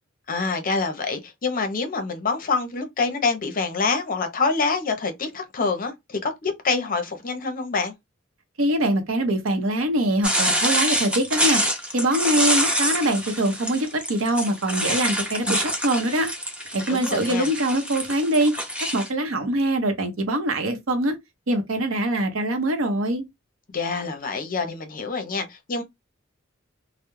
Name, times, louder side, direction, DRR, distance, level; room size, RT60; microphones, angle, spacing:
voice 1, 0.3-7.9 16.9-17.5 23.7-25.8, left 4 dB, 45° left, 0.6 m, -26 dB
voice 2, 8.6-11.6 11.9-16.3 16.7-18.6 18.9-21.2 21.5-23.2, right 1 dB, 75° right, 0.7 m, -23 dB
sound 1, 10.2-19.1, equal, 5° right, 0.5 m, -26 dB
2.2 x 2.0 x 3.0 m
head